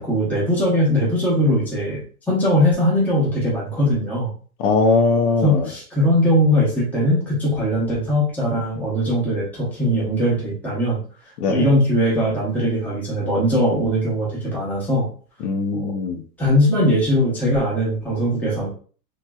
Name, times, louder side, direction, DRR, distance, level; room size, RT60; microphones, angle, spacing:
voice 1, 0.0-2.0 2.3-4.3 5.4-11.0 11.5-15.1 15.7-15.9 16.4-18.7, equal, 5° left, -6 dB, 1.0 m, -20 dB
voice 2, 4.6-5.7 11.4-11.7 15.4-16.2, left 3 dB, 65° left, 5 dB, 1.0 m, -20 dB
3.2 x 2.8 x 2.3 m, 0.41 s
supercardioid pair, 135°, 49 cm